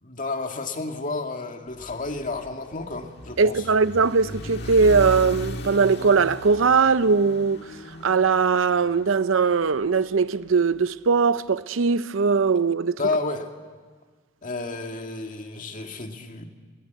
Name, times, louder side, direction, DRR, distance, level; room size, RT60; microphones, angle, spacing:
voice 1, 0.0-3.7 13.0-13.5 14.4-16.4, left 3 dB, 40° left, 2.0 m, -31 dB
sound 1, 1.7-10.0, left 1 dB, 60° left, 1.8 m, -37 dB
voice 2, 3.4-7.6 8.0-13.0, right 5 dB, 90° right, 0.6 m, -20 dB
20.0 x 19.0 x 9.3 m
head